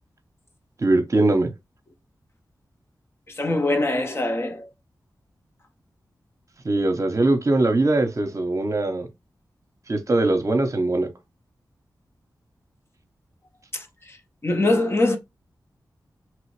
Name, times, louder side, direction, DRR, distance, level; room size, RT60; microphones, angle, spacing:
voice 1, 0.8-1.5 6.6-9.1 9.9-11.1, right 2 dB, 45° right, 0.7 m, -21 dB
voice 2, 3.4-4.7 13.7-14.2 14.4-15.2, left 2 dB, 35° left, 0.6 m, -23 dB
3.0 x 2.4 x 3.1 m
wide cardioid pair, 70°, 8 cm